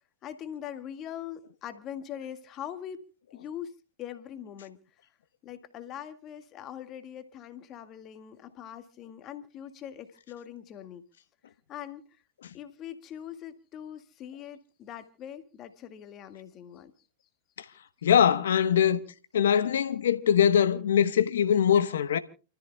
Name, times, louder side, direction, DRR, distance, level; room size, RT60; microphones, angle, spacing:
voice 1, 0.2-3.0 3.3-3.7 4.0-4.8 5.4-11.0 11.7-12.1 12.5-16.9, left 10 dB, 35° left, 1.9 m, -42 dB
voice 2, 18.0-19.0 19.3-22.2, left 8 dB, 75° left, 1.1 m, -22 dB
29.5 x 13.5 x 2.3 m
hypercardioid pair, 110°, 0 cm